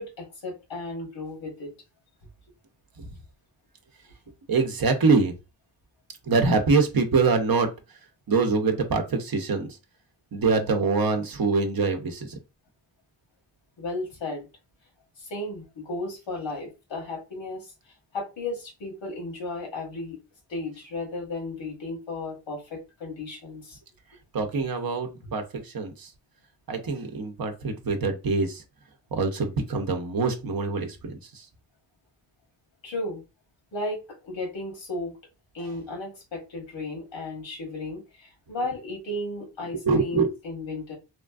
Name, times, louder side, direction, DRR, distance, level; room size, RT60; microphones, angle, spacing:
voice 1, 0.0-1.7 13.8-14.5 15.2-20.2 20.5-23.8 32.8-33.2 33.7-35.1 35.5-41.0, left 2 dB, 90° left, 1.4 m, -34 dB
voice 2, 4.5-5.3 6.3-7.7 8.3-9.8 10.3-12.4 24.3-26.1 26.7-28.6 29.1-31.5 39.7-40.3, right 4 dB, 50° right, 0.7 m, -24 dB
3.0 x 2.5 x 2.3 m
cardioid pair, 70°, 45 cm